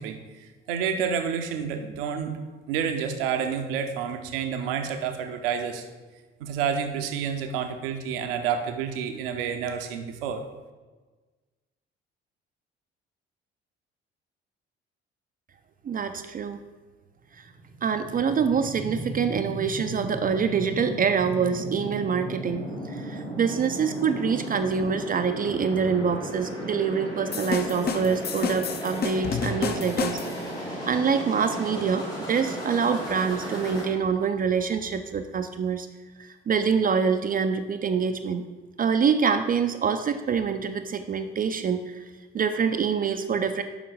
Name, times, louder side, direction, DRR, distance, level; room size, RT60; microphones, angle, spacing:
voice 1, 0.0-2.3 2.7-5.8 6.4-10.4, right 7 dB, 70° right, 6 dB, 0.8 m, -29 dB
voice 2, 15.8-16.6 17.8-35.9 36.2-38.4 38.8-42.0 42.3-43.6, right 6 dB, 30° right, 8 dB, 0.5 m, -26 dB
sound 1, 17.3-33.8, equal, 90° left, 2.4 m, -35 dB
sound 2, 27.3-30.5, left 6 dB, 35° left, 0.7 m, -30 dB
7.1 x 5.3 x 4.9 m, 1.3 s
figure-of-eight pair, 50°, 30 cm